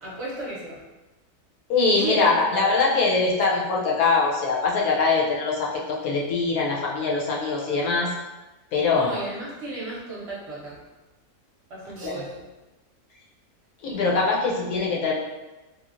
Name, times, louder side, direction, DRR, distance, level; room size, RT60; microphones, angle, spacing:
voice 1, 0.0-0.8 1.9-2.7 8.9-10.8 11.7-12.4, right 2 dB, 55° right, -6 dB, 0.9 m, -33 dB
voice 2, 1.7-8.1 8.7-9.1 12.0-12.2 13.8-15.2, left 4 dB, 75° left, -2 dB, 1.1 m, -23 dB
3.0 x 2.4 x 2.4 m, 1.1 s
omnidirectional pair, 1.6 m